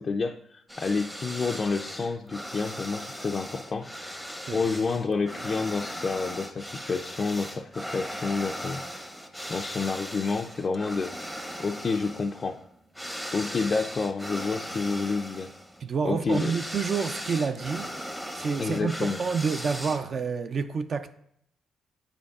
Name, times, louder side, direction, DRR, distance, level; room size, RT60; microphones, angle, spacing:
voice 1, 0.0-4.1 4.5-9.1 9.5-11.1 11.6-12.6 13.3-15.5 16.0-16.5 18.6-19.2, left 4 dB, 40° left, 0.3 m, -29 dB
sound 1, 0.7-20.3, equal, 5° right, 0.6 m, -38 dB
voice 2, 15.8-17.9 18.3-21.1, right 5 dB, 50° right, 0.4 m, -28 dB
8.4 x 5.1 x 2.4 m
cardioid pair, 90°, 0 cm